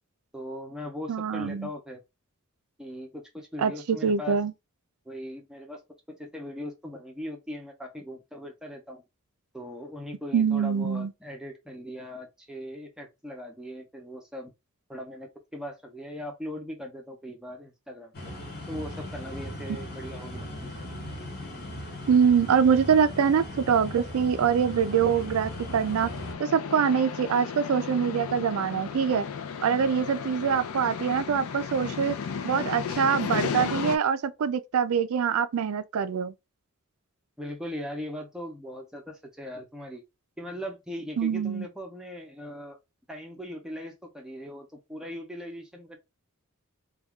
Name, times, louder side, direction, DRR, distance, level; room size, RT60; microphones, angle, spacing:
voice 1, 0.3-2.0 2.8-4.4 5.1-5.8 6.1-9.0 9.5-14.5 14.9-18.4 18.7-20.7 37.4-40.0 40.4-42.8 43.1-46.0, left 1 dB, 5° right, 0.6 m, -39 dB
voice 2, 1.1-1.7 3.6-4.5 10.3-11.1 22.1-26.1 26.4-29.3 29.6-32.2 32.4-36.3 41.2-41.7, right 7 dB, 70° right, 0.4 m, -24 dB
sound 1, 18.1-26.3, left 1 dB, 45° left, 0.9 m, -38 dB
sound 2, 24.6-34.0, left 6 dB, 70° left, 0.4 m, -34 dB
2.3 x 2.3 x 3.5 m
head